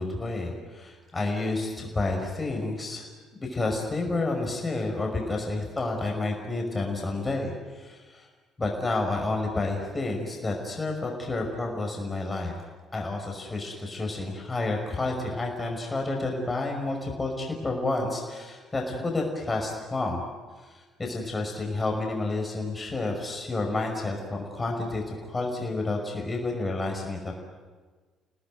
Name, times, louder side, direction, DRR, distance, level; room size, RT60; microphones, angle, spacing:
voice 1, 0.0-3.1 3.4-8.3 8.6-12.5 12.9-20.2 21.0-27.3, left 2 dB, 25° left, 1 dB, 5.6 m, -30 dB
29.5 x 18.0 x 9.4 m, 1.4 s
figure-of-eight pair, 50°, 0 cm